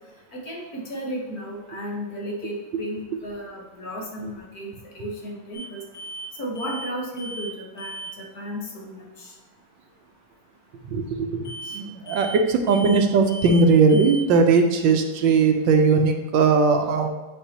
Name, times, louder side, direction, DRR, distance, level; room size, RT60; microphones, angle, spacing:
voice 1, 0.3-5.8 6.4-7.9 8.2-9.3 11.6-11.8, equal, 55° left, -2 dB, 1.6 m, -34 dB
sound 1, 5.5-5.7 5.9-6.3 6.5-6.9 7.2-7.5 7.8-8.1 11.4-11.8 12.1-12.4 12.7-13.0 13.3-13.6 13.9-14.2, right 2 dB, 30° left, 1.6 m, -36 dB
voice 2, 10.9-17.1, right 4 dB, 80° right, 5 dB, 1.4 m, -19 dB
8.9 x 4.5 x 2.8 m, 1.1 s
omnidirectional pair, 2.1 m